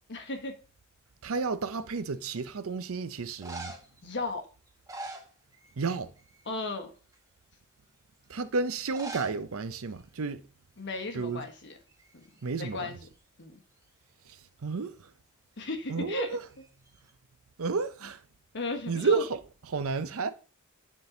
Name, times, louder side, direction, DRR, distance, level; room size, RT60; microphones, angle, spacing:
voice 1, 0.1-0.5 4.0-4.4 6.5-6.9 10.8-11.7 12.1-12.2 12.6-13.0 13.4-13.6 15.6-16.4 18.5-19.2, left 3 dB, 55° left, 1.2 m, -35 dB
voice 2, 1.2-3.7 5.8-6.1 8.3-10.4 11.1-11.5 12.4-12.9 14.3-15.1 15.9-16.4 17.6-18.2 18.9-20.3, right 4 dB, 65° right, 0.6 m, -31 dB
sound 1, 1.8-2.3 3.2-4.0 4.7-5.9 6.2-6.5 7.1-7.2 8.8-9.4 9.7-9.8 10.0-10.1 10.8-11.0 11.3-12.5 16.5-17.1, right 2 dB, 15° right, 1.0 m, -44 dB
9.5 x 3.8 x 3.8 m
head